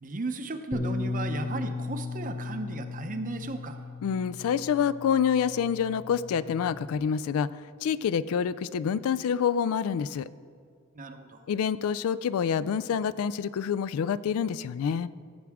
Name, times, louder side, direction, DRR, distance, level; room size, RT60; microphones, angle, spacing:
voice 1, 0.0-3.8 10.9-11.5, right 2 dB, 40° right, 7 dB, 0.7 m, -35 dB
Bass guitar, 0.7-7.0, left 3 dB, 20° left, 0.6 m, -36 dB
voice 2, 4.0-7.5 7.8-10.3 11.5-15.1, left 7 dB, 70° left, 18 dB, 0.3 m, -27 dB
15.5 x 7.1 x 3.5 m, 2.2 s
head